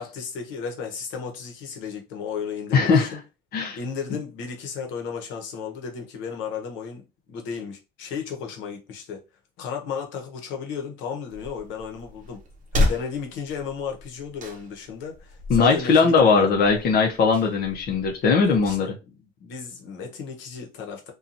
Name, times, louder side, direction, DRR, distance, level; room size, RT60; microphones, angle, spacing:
voice 1, 0.0-3.2 3.8-9.2 9.6-12.4 12.7-16.7 18.4-21.1, left 6 dB, 80° left, 0.9 m, -34 dB
voice 2, 2.7-3.2 3.5-3.8 15.5-18.9, left 5 dB, 55° left, 0.7 m, -19 dB
sound 1, 11.3-18.8, left 1 dB, 45° right, 0.7 m, -32 dB
2.7 x 2.3 x 2.5 m
cardioid pair, 115°, 19 cm